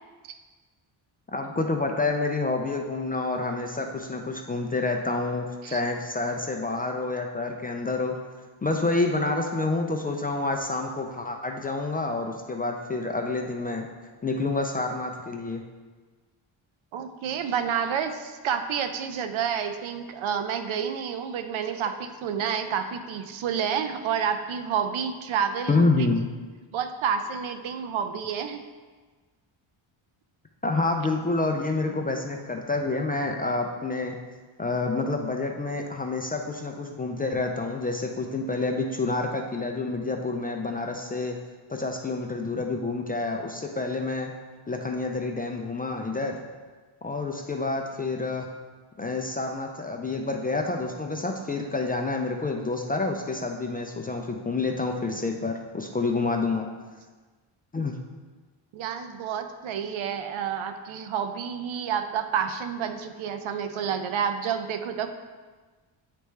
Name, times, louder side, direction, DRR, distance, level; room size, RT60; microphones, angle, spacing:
voice 1, 1.3-8.2 8.6-13.9 14.2-15.6 25.7-26.2 30.6-34.2 34.6-41.4 41.7-44.3 44.7-46.4 47.0-48.5 49.0-56.7 57.7-58.0, left 3 dB, 20° left, 2 dB, 0.3 m, -28 dB
voice 2, 16.9-25.8 26.7-28.6 58.7-65.1, right 7 dB, 70° right, 8 dB, 0.6 m, -29 dB
9.0 x 3.4 x 3.2 m, 1.4 s
cardioid pair, 100°, 49 cm